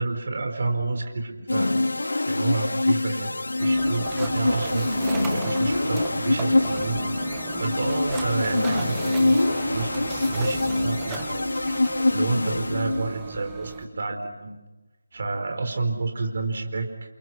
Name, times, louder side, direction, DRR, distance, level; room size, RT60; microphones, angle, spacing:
voice 1, 0.0-1.7 2.0-3.3 3.6-7.0 7.6-11.5 11.8-14.6 15.1-16.9, right 3 dB, 50° right, 5 dB, 4.3 m, -30 dB
sound 1, 1.5-13.3, left 2 dB, 70° left, 1.0 m, -25 dB
sound 2, 3.6-13.9, right 5 dB, 10° right, 1.7 m, -36 dB
29.5 x 28.0 x 6.0 m, 1.1 s
figure-of-eight pair, 160°, 0 cm